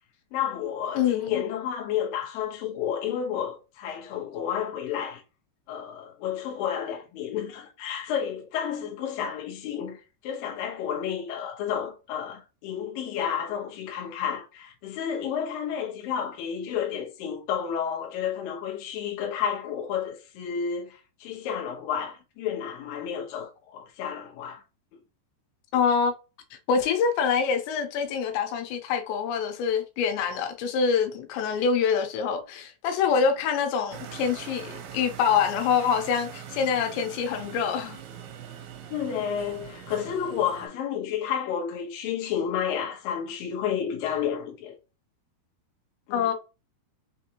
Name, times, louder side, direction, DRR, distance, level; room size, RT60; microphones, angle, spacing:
voice 1, 0.3-5.2 5.7-24.6 38.9-44.7 46.1-46.3, left 8 dB, 70° left, 2.5 m, -31 dB
voice 2, 1.0-1.3 25.7-26.1 26.7-38.0 46.1-46.3, left 6 dB, 90° left, 2.9 m, -25 dB
sound 1, 33.9-40.7, right 9 dB, 75° right, 2.8 m, -42 dB
6.5 x 2.6 x 2.9 m
omnidirectional pair, 4.9 m